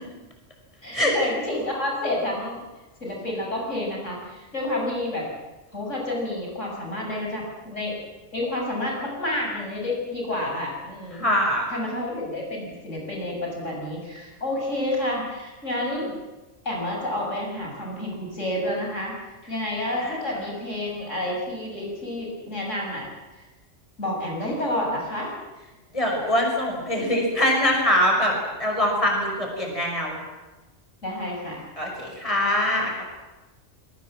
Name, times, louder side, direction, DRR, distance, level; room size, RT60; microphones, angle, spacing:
voice 1, 0.8-2.6 3.0-5.3 5.7-8.0 8.3-11.3 11.7-16.1 16.7-19.2 19.5-23.1 23.4-23.5 24.0-25.3 31.0-31.7, left 1 dB, 80° left, -1 dB, 6.9 m, -29 dB
voice 2, 11.2-11.6 20.0-20.1 25.9-28.3 28.6-30.2 31.8-33.1, left 1 dB, 25° left, 1 dB, 5.8 m, -23 dB
27.0 x 21.5 x 7.6 m, 1.1 s
omnidirectional pair, 1.3 m